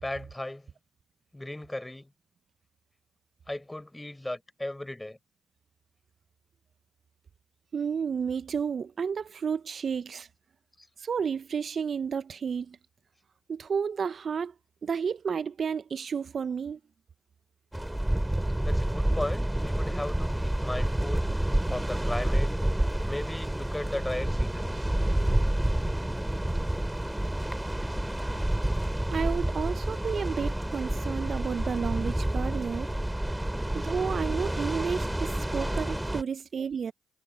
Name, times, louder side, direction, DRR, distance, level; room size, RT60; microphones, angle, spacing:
voice 1, 0.0-0.7 1.3-2.1 3.5-5.2 10.8-10.9 18.6-21.3 21.7-22.5 23.1-24.9, left 1 dB, 15° left, 4.6 m, -36 dB
voice 2, 7.7-10.3 11.0-12.8 13.5-14.5 14.8-16.8 25.6-25.7 29.1-32.9 33.7-36.9, right 6 dB, 55° right, 0.9 m, -31 dB
sound 1, 17.7-36.2, right 1 dB, 10° right, 4.7 m, -29 dB
hypercardioid pair, 45°, 0 cm